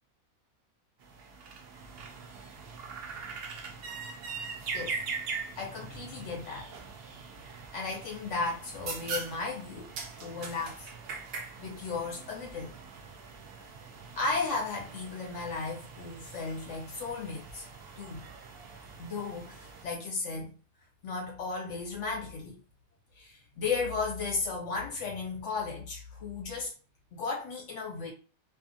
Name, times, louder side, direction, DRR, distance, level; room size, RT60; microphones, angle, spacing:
sound 1, 1.0-19.8, right 5 dB, 65° right, 0.6 m, -42 dB
voice 1, 5.5-6.7 7.7-9.9 10.2-10.9 11.6-12.7 14.2-17.7 18.0-18.2 19.0-20.5 21.0-22.6 23.2-26.7 27.1-28.1, left 4 dB, 60° left, -1 dB, 1.3 m, -35 dB
2.8 x 2.3 x 2.6 m, 0.37 s
omnidirectional pair, 1.5 m